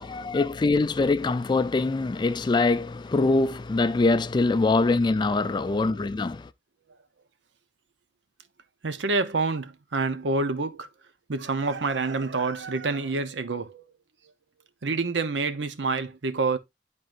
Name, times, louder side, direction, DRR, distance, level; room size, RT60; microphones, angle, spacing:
voice 1, 0.0-6.5, left 3 dB, 25° left, 0.3 m, -23 dB
voice 2, 8.8-10.9 11.3-13.9 14.8-16.6, right 3 dB, 75° right, 0.7 m, -27 dB
10.5 x 3.7 x 2.5 m
head